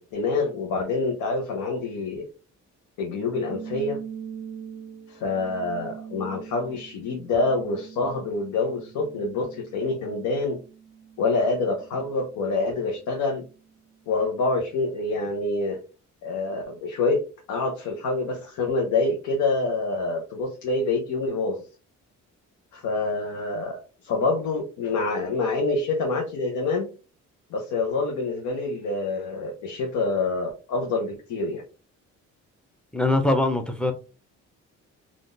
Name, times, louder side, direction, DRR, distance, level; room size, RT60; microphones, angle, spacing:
voice 1, 0.0-2.3 3.0-4.0 5.1-10.6 11.2-13.4 14.1-15.8 16.2-17.2 17.5-21.6 22.7-26.9 27.5-31.6, left 3 dB, 85° left, 0.8 m, -26 dB
sound 1, 3.1-14.0, right 8 dB, 35° right, 0.4 m, -43 dB
voice 2, 32.9-33.9, left 2 dB, 5° left, 0.6 m, -22 dB
3.6 x 2.5 x 2.5 m
cardioid pair, 90°, 30 cm